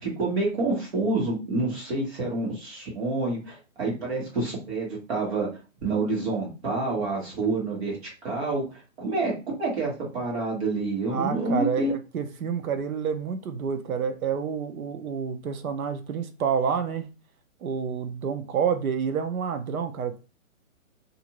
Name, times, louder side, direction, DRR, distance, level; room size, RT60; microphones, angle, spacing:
voice 1, 0.0-5.5 5.8-8.0 8.2-11.9, right 3 dB, 50° right, 1.5 m, -28 dB
voice 2, 11.1-17.1 17.6-20.2, right 7 dB, 85° right, 0.7 m, -28 dB
2.6 x 2.5 x 2.9 m
hypercardioid pair, 170°, 41 cm